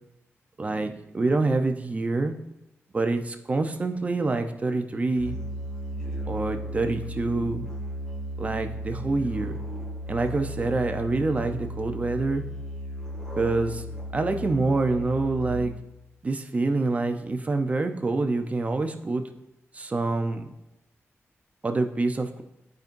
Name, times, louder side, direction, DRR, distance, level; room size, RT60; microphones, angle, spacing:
voice 1, 0.6-2.4 2.9-5.4 6.3-7.7 8.4-9.5 10.1-12.4 13.4-13.8 14.1-15.7 16.2-19.2 19.7-20.5 21.6-22.4, right 3 dB, 30° right, 6 dB, 0.6 m, -26 dB
Musical instrument, 5.2-16.0, equal, 15° left, 1.9 m, -35 dB
13.5 x 5.3 x 2.6 m, 0.89 s
wide cardioid pair, 145°, 5 cm